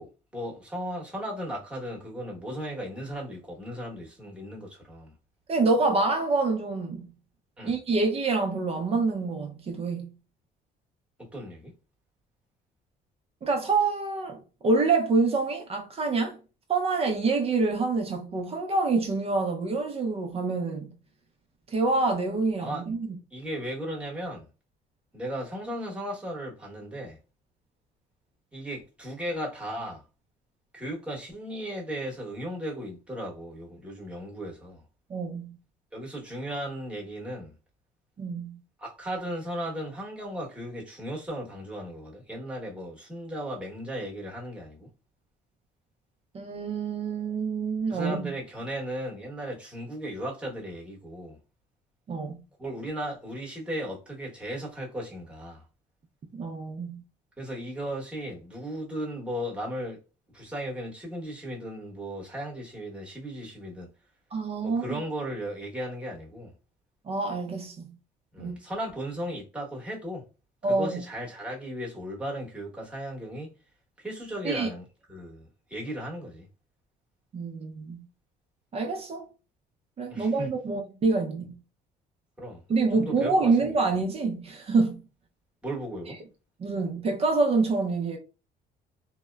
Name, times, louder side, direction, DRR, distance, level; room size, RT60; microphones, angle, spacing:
voice 1, 0.0-5.1 7.6-7.8 11.2-11.7 22.6-22.9 23.3-24.5 25.1-27.2 28.5-30.0 30.7-34.8 35.9-37.5 38.8-44.9 47.9-51.4 52.6-55.6 57.4-60.0 60.3-63.9 64.6-66.5 68.3-70.3 70.7-73.5 74.0-76.4 80.1-80.5 82.4-82.6 82.9-83.7 85.6-86.2, equal, 5° right, 1.0 m, -36 dB
voice 2, 5.5-7.0 7.6-10.1 13.4-16.4 16.7-20.9 21.7-23.1 35.1-35.6 38.2-38.6 46.3-48.2 52.1-52.4 56.3-57.0 64.3-65.0 67.1-67.9 68.4-68.5 70.6-71.0 74.4-74.7 77.3-78.0 78.7-79.3 80.0-81.5 82.7-85.0 86.6-88.2, right 3 dB, 35° right, 0.6 m, -26 dB
2.7 x 2.1 x 2.2 m
cardioid pair, 110°, 17 cm